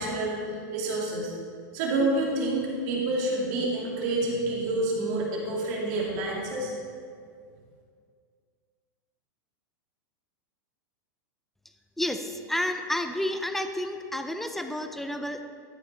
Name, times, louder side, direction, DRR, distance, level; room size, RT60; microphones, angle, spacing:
voice 1, 0.0-1.3 1.7-6.7, right 2 dB, 55° right, -3 dB, 2.6 m, -28 dB
voice 2, 12.0-15.4, left 1 dB, ahead, 7 dB, 0.5 m, -30 dB
12.5 x 6.3 x 4.1 m, 2.2 s
supercardioid pair, 135°, 11 cm